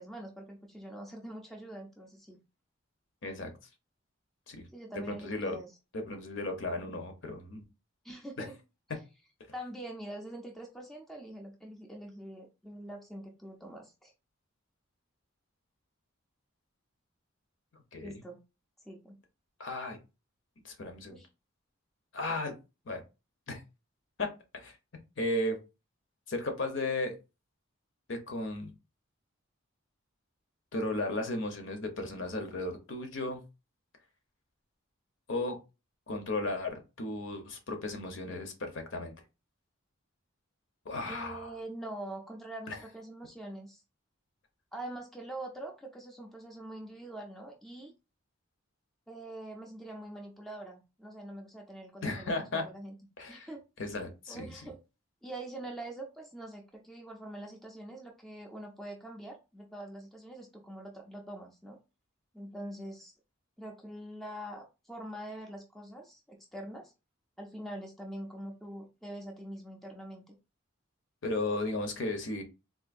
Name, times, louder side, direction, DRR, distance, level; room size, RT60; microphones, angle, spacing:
voice 1, 0.0-2.4 4.7-5.7 8.0-8.6 9.5-14.1 18.0-18.4 18.8-19.2 21.1-21.3 41.1-43.8 44.7-47.9 49.1-53.0 53.3-53.6 54.3-54.8 55.2-61.8 62.3-63.1 63.6-66.9 67.4-70.3, right 1 dB, ahead, 1 dB, 0.5 m, -44 dB
voice 2, 5.1-5.6 5.9-7.6 8.4-8.5 17.9-18.2 19.6-20.0 20.6-21.2 22.1-22.5 22.9-23.0 23.5-23.6 24.2-24.3 24.5-24.7 25.2-25.6 26.3-27.2 28.1-28.7 30.7-33.4 35.3-35.6 36.1-39.1 40.9-41.5 42.7-42.8 52.0-52.6 53.2-53.5 53.8-54.5 71.2-72.4, left 2 dB, 60° left, 5 dB, 0.8 m, -35 dB
3.7 x 2.6 x 2.5 m, 0.28 s
head